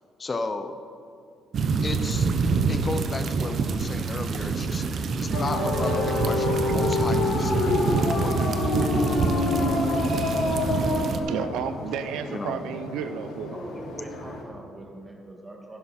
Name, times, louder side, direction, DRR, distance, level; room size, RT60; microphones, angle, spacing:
voice 1, 0.2-0.8 1.8-2.3 2.7-8.3 12.3-12.6, left 3 dB, 25° left, 8 dB, 0.6 m, -34 dB
sound 1, 1.5-11.2, right 4 dB, 50° right, 0.8 m, -26 dB
sound 2, 5.3-14.4, left 3 dB, 80° left, 1.7 m, -28 dB
voice 2, 11.2-13.6, right 8 dB, 90° right, 9 dB, 0.6 m, -32 dB
voice 3, 13.5-15.8, right 1 dB, 15° right, 1 dB, 1.9 m, -42 dB
11.0 x 11.0 x 4.3 m, 2.6 s
cardioid pair, 110°, 0 cm